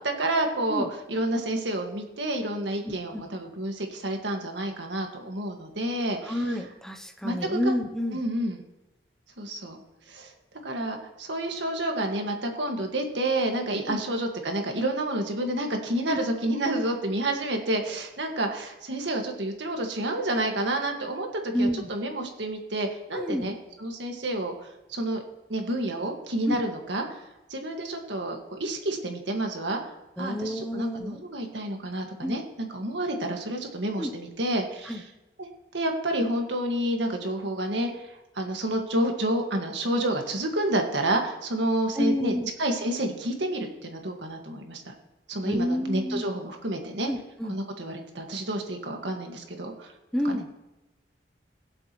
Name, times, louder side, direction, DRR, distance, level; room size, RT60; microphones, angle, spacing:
voice 1, 0.0-6.4 7.2-7.8 8.1-8.6 9.4-9.8 10.1-10.3 10.6-24.5 24.9-25.2 25.5-27.0 27.5-29.8 30.2-35.0 35.7-44.8 45.3-47.1 47.5-49.9 50.2-50.4, right 1 dB, 90° right, 3 dB, 1.7 m, -29 dB
voice 2, 2.8-3.2 6.2-8.2 13.9-14.0 16.1-16.2 21.5-21.9 23.1-23.5 26.5-26.6 30.2-31.2 32.2-32.4 34.0-34.1 34.9-35.0 41.9-42.5 45.4-46.3 47.1-47.6 50.1-50.5, equal, 5° left, 4 dB, 0.7 m, -29 dB
21.0 x 7.6 x 3.1 m, 0.98 s
head